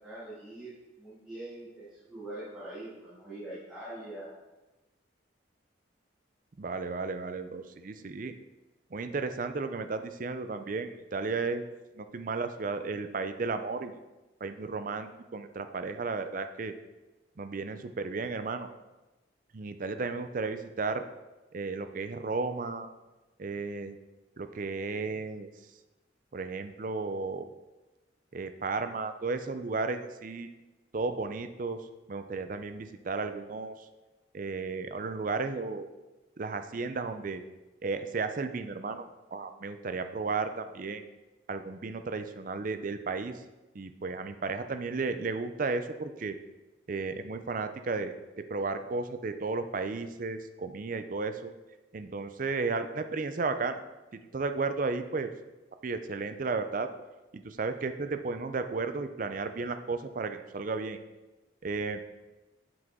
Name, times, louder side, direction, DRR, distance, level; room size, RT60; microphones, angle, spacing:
voice 1, 0.0-4.3, right 1 dB, 5° right, -12 dB, 2.0 m, -43 dB
voice 2, 6.6-8.3 8.9-11.6 12.0-14.0 14.4-16.7 17.4-18.7 19.5-21.0 21.5-22.9 23.4-24.0 24.4-25.5 26.3-27.5 28.3-30.5 30.9-31.8 32.1-33.9 34.3-35.9 36.4-37.4 37.8-39.0 39.3-41.0 41.5-43.3 43.7-46.4 46.9-48.1 48.5-51.5 51.9-53.8 54.3-55.3 55.8-56.9 57.3-61.0 61.6-62.0, right 4 dB, 45° right, 8 dB, 0.5 m, -34 dB
7.8 x 6.0 x 3.7 m, 1.1 s
head